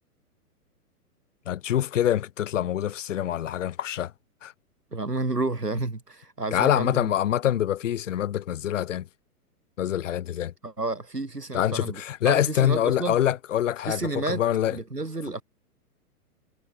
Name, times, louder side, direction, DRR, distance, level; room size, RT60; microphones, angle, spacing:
voice 1, 1.5-4.1 4.4-4.5 6.5-9.1 9.8-10.5 11.5-14.8, left 11 dB, 50° left, 2.3 m, -25 dB
voice 2, 4.9-7.1 10.6-13.2 13.9-14.4 14.7-15.4, right 2 dB, 85° right, 4.1 m, -30 dB
figure-of-eight pair, 115°, 47 cm